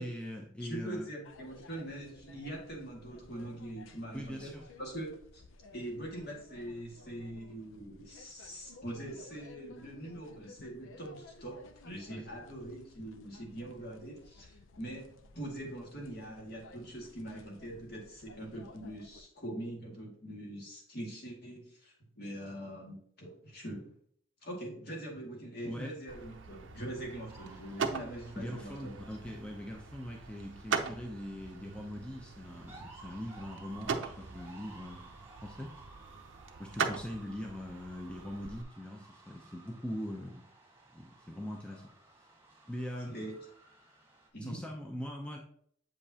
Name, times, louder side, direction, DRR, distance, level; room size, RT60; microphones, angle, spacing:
voice 1, 0.0-1.1 4.1-4.6 12.1-12.2 25.6-26.0 28.4-35.7 36.6-40.5 40.9-41.8 42.2-42.3 42.7-43.2 44.4-45.4, equal, 5° left, 0 dB, 0.6 m, -42 dB
voice 2, 0.6-4.5 4.8-5.4 5.7-11.6 11.8-23.9 24.4-28.9 41.7-41.8 43.1-43.4 44.3-44.6, right 1 dB, 50° left, -1 dB, 1.9 m, -43 dB
sound 1, 1.2-19.2, left 3 dB, 85° left, 0.6 m, -56 dB
sound 2, 26.1-38.6, right 5 dB, 70° right, 0.6 m, -41 dB
sound 3, 27.3-44.3, right 3 dB, 15° right, 1.3 m, -57 dB
7.7 x 5.1 x 2.8 m, 0.64 s
head